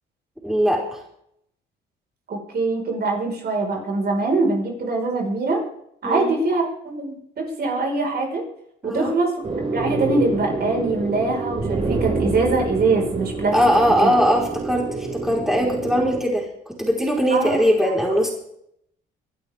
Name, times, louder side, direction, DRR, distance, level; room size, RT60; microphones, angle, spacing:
voice 1, 0.4-1.0 6.0-6.3 8.8-9.1 13.5-18.3, equal, ahead, -2 dB, 4.7 m, -20 dB
voice 2, 2.3-5.7 6.0-8.5 8.8-9.3 9.7-13.6 14.0-14.1 17.3-17.6, right 3 dB, 50° right, 1 dB, 5.2 m, -23 dB
sound 1, 9.4-16.2, right 3 dB, 30° right, 6.4 m, -27 dB
23.5 x 12.0 x 3.7 m, 0.72 s
cardioid pair, 90°, 20 cm